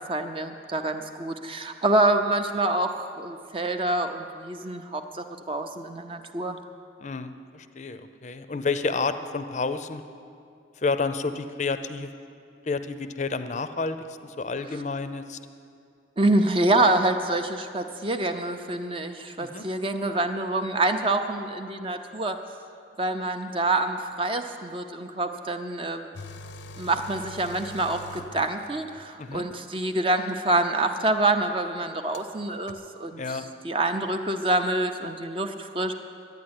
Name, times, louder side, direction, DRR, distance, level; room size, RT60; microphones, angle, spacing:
voice 1, 0.1-6.6 16.2-22.4 23.0-26.1 26.8-33.2 33.6-35.9, right 2 dB, 30° right, 6 dB, 0.6 m, -26 dB
voice 2, 7.0-10.0 10.8-12.1 12.6-15.4 19.4-19.6 29.2-29.4 33.2-33.5, left 4 dB, 40° left, 10 dB, 0.5 m, -30 dB
sound 1, 26.1-29.0 30.3-30.4 32.1-32.2 32.7-32.8, left 2 dB, 75° left, 0.7 m, -43 dB
11.5 x 9.3 x 9.7 m, 2.5 s
head